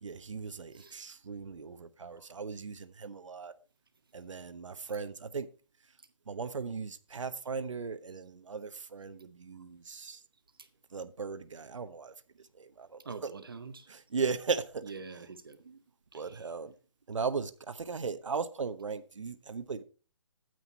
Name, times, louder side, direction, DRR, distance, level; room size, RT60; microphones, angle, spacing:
voice 1, 0.0-3.5 4.1-5.5 6.3-10.2 10.9-12.1 12.5-13.3 13.9-14.8 16.1-16.7 17.1-19.8, right 5 dB, 75° right, 12 dB, 1.0 m, -37 dB
voice 2, 13.0-13.9 14.8-15.8 16.1-16.5, right 4 dB, 45° right, 8 dB, 0.8 m, -46 dB
9.4 x 7.9 x 4.0 m, 0.35 s
hypercardioid pair, 180°, 16 cm